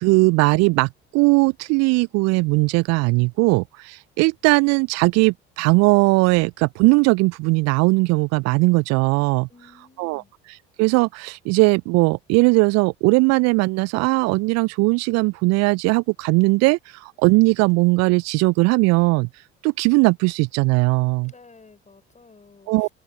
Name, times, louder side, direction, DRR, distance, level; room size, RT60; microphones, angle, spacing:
voice 1, 0.0-9.5 10.0-10.2 10.8-19.3 19.6-21.3 22.7-22.9, right 26 dB, 50° right, 0.5 m, -19 dB
voice 2, 9.5-10.3 21.2-22.9, left 4 dB, 20° left, 5.9 m, -52 dB
open air
figure-of-eight pair, 60°, 33 cm